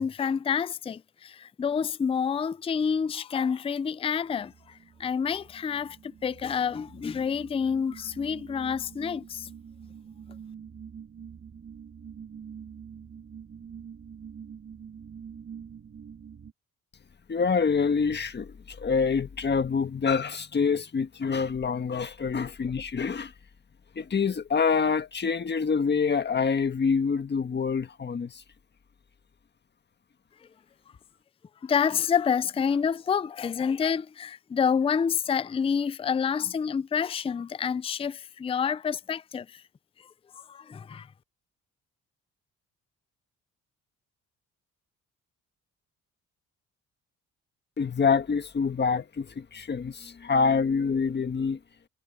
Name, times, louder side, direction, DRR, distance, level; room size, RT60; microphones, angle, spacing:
voice 1, 0.0-9.5 31.6-39.6 40.0-41.1, left 7 dB, 20° left, 0.4 m, -28 dB
sound 1, 4.1-16.5, right 7 dB, 45° right, 2.7 m, -46 dB
voice 2, 17.3-23.3 23.9-28.4 47.8-51.6, left 5 dB, 35° left, 1.6 m, -26 dB
cardioid pair, 90°, 30 cm